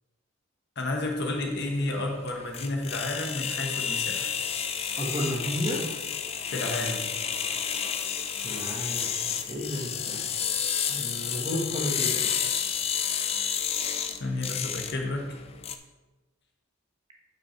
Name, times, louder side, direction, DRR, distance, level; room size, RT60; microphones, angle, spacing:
voice 1, 0.8-4.3 6.5-7.1 14.2-15.3, left 2 dB, 50° left, 2 dB, 1.1 m, -31 dB
sound 1, 1.0-15.7, left 8 dB, 25° left, 0.3 m, -31 dB
voice 2, 4.9-5.8 8.4-10.3 10.9-12.3, equal, 25° right, -1 dB, 1.3 m, -32 dB
8.7 x 5.4 x 4.3 m, 1.2 s
head